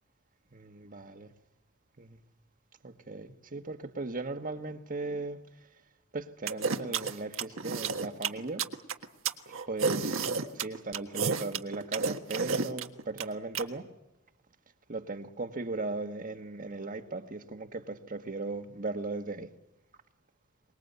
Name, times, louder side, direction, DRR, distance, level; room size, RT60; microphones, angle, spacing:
voice 1, 0.5-1.3 2.0-2.2 2.8-5.4 6.1-8.6 9.5-10.2 10.5-13.9 14.9-19.5, right 3 dB, 40° right, 1.4 m, -37 dB
sound 1, 6.5-13.6, right 5 dB, 70° right, 1.5 m, -31 dB
24.5 x 21.5 x 8.1 m
head